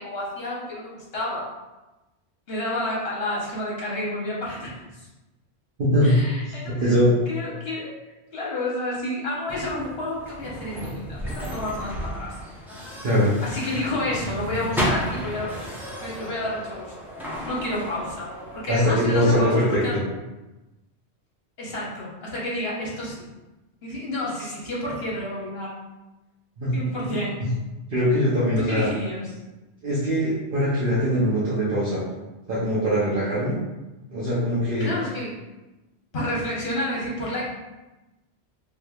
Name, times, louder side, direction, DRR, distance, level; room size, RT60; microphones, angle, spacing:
voice 1, 0.0-1.5 2.5-5.1 6.0-6.9 7.3-7.9 8.3-12.3 13.4-15.5 16.0-16.9 17.4-20.0 21.6-23.3 23.8-25.7 26.7-27.4 28.6-29.3 34.8-35.4 36.1-37.4, left 1 dB, 65° left, -6 dB, 1.3 m, -30 dB
voice 2, 5.8-6.1 6.4-7.1 13.0-13.3 18.7-19.8 26.6-27.2 27.9-28.9 29.8-32.0 32.5-33.5 34.1-34.9, equal, 55° right, -9 dB, 0.9 m, -22 dB
sound 1, 9.5-18.6, equal, ahead, 0.6 m, -33 dB
3.5 x 3.1 x 2.3 m, 1.1 s
omnidirectional pair, 1.1 m